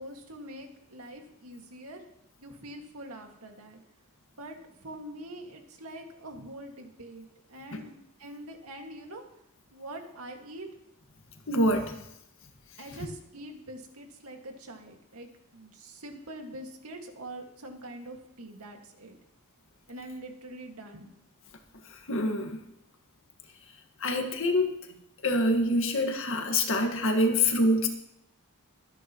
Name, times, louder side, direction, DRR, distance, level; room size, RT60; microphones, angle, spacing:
voice 1, 0.0-2.0 2.4-3.8 4.4-7.9 8.2-9.2 9.7-10.7 12.8-19.2 19.9-21.1, right 1 dB, 90° right, 3 dB, 2.1 m, -44 dB
voice 2, 11.5-12.0 13.0-13.1 21.9-22.6 24.0-24.8 25.2-27.9, left 1 dB, 65° left, 4 dB, 1.8 m, -26 dB
24.0 x 9.9 x 3.1 m, 0.79 s
head